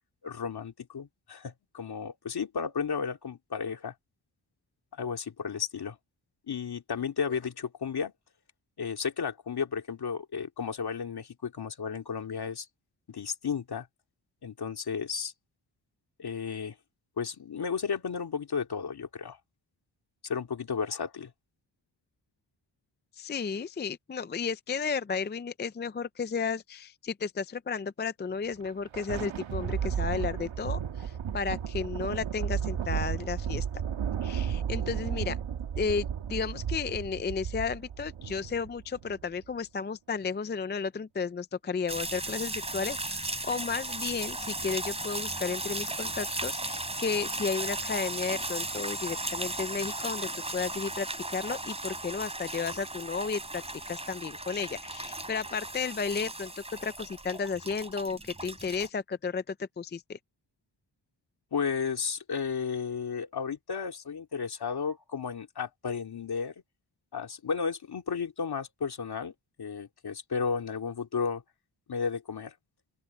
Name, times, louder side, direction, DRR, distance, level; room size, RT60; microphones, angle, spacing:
voice 1, 0.2-3.9 5.0-6.0 6.5-8.1 8.8-12.7 13.1-13.9 14.4-15.3 16.2-16.7 17.2-19.4 20.2-21.3 61.5-66.5 67.1-69.3 69.6-71.4 71.9-72.5, left 6 dB, 55° left, 2.5 m, -33 dB
voice 2, 23.1-33.7 34.2-35.4 35.8-56.5 56.8-60.2, left 5 dB, 25° left, 0.4 m, -33 dB
Thunder, 28.5-39.3, right 8 dB, 90° right, 1.6 m, -33 dB
sound 1, 41.9-58.9, right 2 dB, 15° right, 3.1 m, -36 dB
open air
wide cardioid pair, 150°, 46 cm